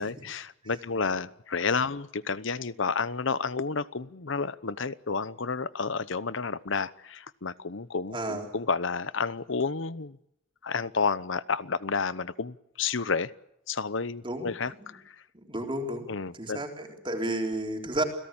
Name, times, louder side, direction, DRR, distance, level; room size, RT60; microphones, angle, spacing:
voice 1, 0.0-10.2 10.6-13.3 13.7-15.1 16.1-16.6, left 4 dB, 65° left, 17 dB, 0.9 m, -31 dB
voice 2, 8.1-8.4 14.2-14.5 14.8-14.9 15.5-16.1 16.3-18.0, right 1 dB, 25° right, 2 dB, 3.7 m, -31 dB
29.5 x 17.5 x 8.9 m, 0.79 s
head